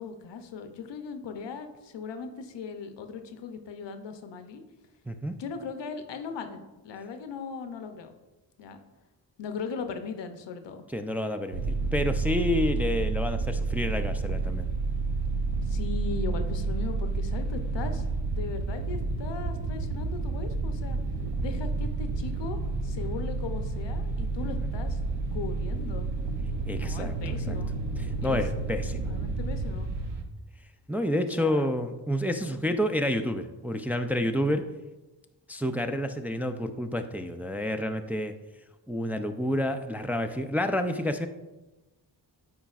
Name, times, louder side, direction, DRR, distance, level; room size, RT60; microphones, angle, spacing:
voice 1, 0.0-4.6 5.3-8.1 8.6-8.8 9.4-10.9 15.6-21.0 21.3-25.0 25.3-26.1 26.8-27.7 28.2-28.4 29.0-29.9 31.4-31.7 32.5-32.8, left 5 dB, 85° left, 7 dB, 0.7 m, -38 dB
voice 2, 5.1-5.4 10.9-14.7 26.7-27.1 27.5-27.6 28.2-29.1 30.9-34.7 35.5-38.3 38.9-41.3, left 1 dB, 5° right, 6 dB, 0.4 m, -29 dB
sound 1, 11.5-30.2, right 3 dB, 75° right, 0.8 m, -30 dB
8.7 x 4.6 x 2.4 m, 1.1 s
cardioid pair, 65°, 42 cm